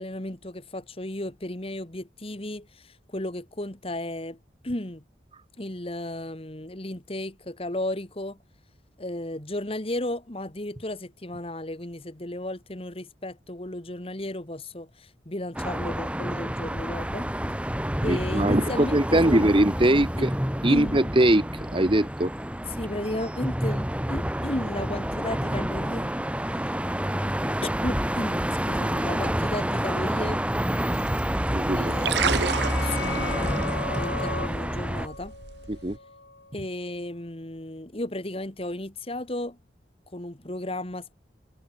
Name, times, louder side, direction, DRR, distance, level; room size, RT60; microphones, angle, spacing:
voice 1, 0.0-4.4 4.6-5.0 5.6-8.4 9.0-17.3 18.0-19.4 20.2-20.3 20.7-21.0 22.7-26.1 27.6-30.4 30.8-30.9 31.7-32.5 32.7-35.3 36.5-39.6 40.1-41.1, left 1 dB, 30° left, 1.8 m, -34 dB
sound 1, 15.5-35.1, equal, 5° right, 2.7 m, -28 dB
voice 2, 18.0-20.3 20.6-22.3 31.5-31.9 35.7-36.0, right 1 dB, 30° right, 1.3 m, -22 dB
sound 2, 30.9-36.0, right 6 dB, 65° right, 1.0 m, -33 dB
sound 3, 31.5-36.9, left 3 dB, 75° left, 7.1 m, -37 dB
head